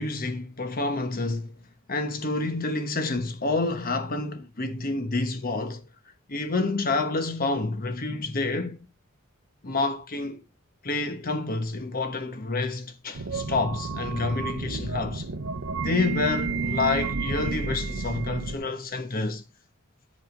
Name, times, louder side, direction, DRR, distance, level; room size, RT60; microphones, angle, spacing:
voice 1, 0.0-1.6 1.9-5.8 6.3-8.8 9.6-10.4 10.8-15.3 15.8-19.4, left 3 dB, 40° left, 1.1 m, -28 dB
sound 1, 13.1-18.6, right 4 dB, 85° right, 0.9 m, -31 dB
11.0 x 5.3 x 3.8 m
head